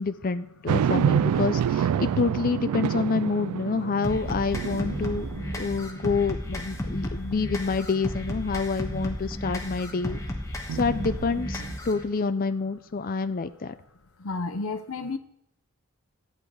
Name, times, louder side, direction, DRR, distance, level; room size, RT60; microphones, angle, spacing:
voice 1, 0.0-5.3 5.6-10.2 10.7-13.7, left 4 dB, 40° left, 11 dB, 0.5 m, -27 dB
sound 1, 0.7-6.2 6.7-6.8 10.7-11.8, right 8 dB, 85° right, 0.3 m, -28 dB
sound 2, 4.0-12.0, left 1 dB, 15° left, 1.3 m, -33 dB
voice 2, 14.2-15.2, left 3 dB, 65° left, 9 dB, 0.8 m, -31 dB
12.5 x 8.8 x 4.8 m, 0.78 s
head